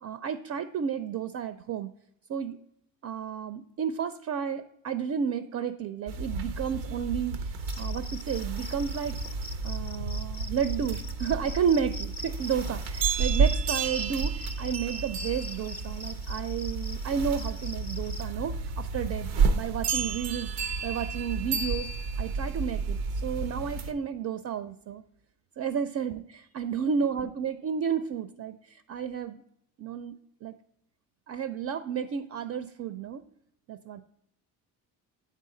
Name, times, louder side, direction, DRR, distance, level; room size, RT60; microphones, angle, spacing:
voice 1, 0.0-1.9 2.3-2.6 3.0-9.2 9.6-21.9 22.2-25.0 25.6-29.4 29.8-30.2 30.4-30.5 31.3-33.2 33.7-34.0, right 7 dB, 40° right, 12 dB, 0.4 m, -32 dB
sound 1, 6.1-23.9, right 4 dB, 90° right, 0.6 m, -31 dB
Cricket, 7.6-18.2, left 1 dB, 20° left, 0.6 m, -43 dB
8.2 x 3.7 x 3.7 m, 0.78 s
hypercardioid pair, 50°, 43 cm